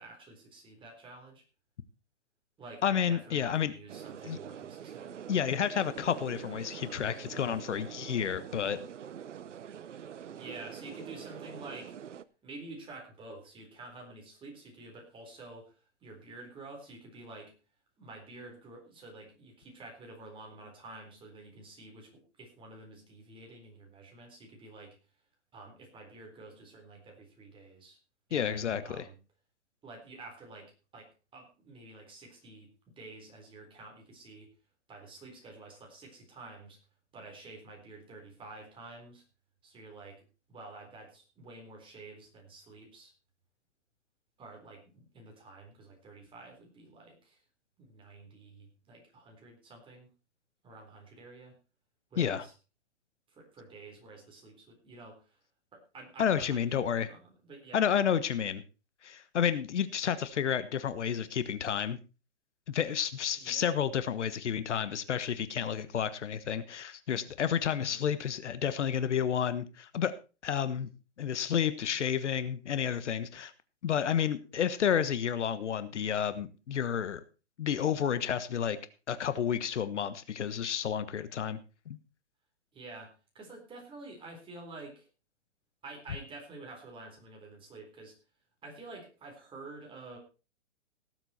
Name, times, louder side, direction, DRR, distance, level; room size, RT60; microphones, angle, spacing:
voice 1, 0.0-1.4 2.6-5.2 10.3-11.9 12.4-15.7 16.0-17.5 18.0-24.9 25.5-28.0 28.3-29.2 29.8-34.5 34.9-36.8 37.1-39.2 39.6-40.2 40.5-43.1 44.4-47.4 47.8-50.1 50.6-51.5 52.1-52.5 53.3-55.4 55.7-57.8 63.4-63.7 67.7-68.0 82.7-85.1 85.8-88.2 88.6-90.2, right 2 dB, 15° right, 1 dB, 3.9 m, -49 dB
voice 2, 2.8-3.7 4.2-4.4 5.3-8.8 28.3-29.0 52.2-52.4 56.2-57.1 57.7-58.6 59.0-62.0 62.7-70.1 70.4-70.9 71.2-73.5 73.8-77.2 77.6-78.8 79.1-81.6 81.9-82.0, left 8 dB, 75° left, 13 dB, 1.3 m, -30 dB
sound 1, 3.9-12.2, right 9 dB, 85° right, 0.9 m, -45 dB
17.5 x 8.0 x 4.3 m, 0.32 s
hypercardioid pair, 145°, 35 cm